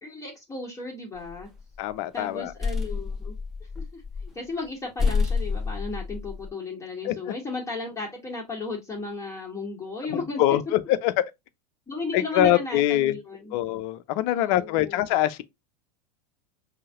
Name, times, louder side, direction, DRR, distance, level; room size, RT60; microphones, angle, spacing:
voice 1, 0.0-1.5 2.1-3.4 3.7-10.4 11.9-13.6 14.3-15.0, left 3 dB, 15° left, 1.7 m, -35 dB
sound 1, 1.2-1.8 2.2-4.4 4.7-4.8 5.0-6.5, left 4 dB, ahead, 1.3 m, -28 dB
voice 2, 1.8-2.5 7.0-7.3 10.1-11.1 12.1-13.2 13.5-15.4, left 13 dB, 50° left, 0.6 m, -24 dB
5.5 x 2.8 x 2.5 m
hypercardioid pair, 90°, 21 cm